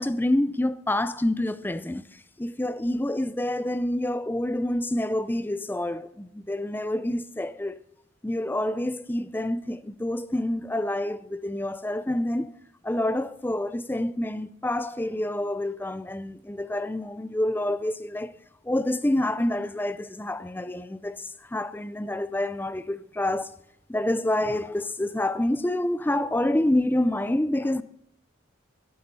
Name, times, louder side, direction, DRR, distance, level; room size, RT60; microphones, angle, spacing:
voice 1, 0.0-7.8 8.2-12.5 12.8-18.3 18.6-23.6 23.9-27.8, left 1 dB, 10° left, 0.4 m, -27 dB
16.0 x 8.7 x 5.4 m
head